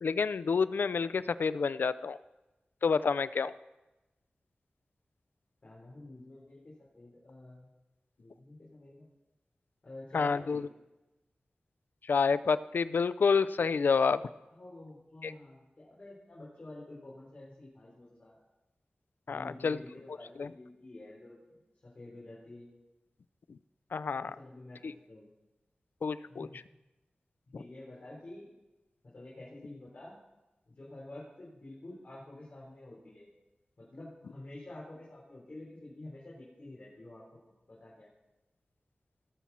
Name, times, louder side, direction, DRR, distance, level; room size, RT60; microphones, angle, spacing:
voice 1, 0.0-2.2 2.8-3.5 10.1-10.6 12.1-14.2 15.2-15.3 19.3-19.8 20.4-20.5 23.9-24.4 24.8-24.9 26.0-26.5, left 5 dB, 80° left, 15 dB, 0.3 m, -28 dB
voice 2, 5.6-7.7 8.2-9.0 9.8-10.6 14.5-18.3 19.3-22.7 24.2-25.3 26.2-26.6 27.5-28.5 29.0-30.2 30.7-33.3 33.8-37.2 37.7-38.1, left 2 dB, 50° left, -7 dB, 4.0 m, -49 dB
18.0 x 7.3 x 4.2 m, 1.0 s
wide cardioid pair, 90°, 3 cm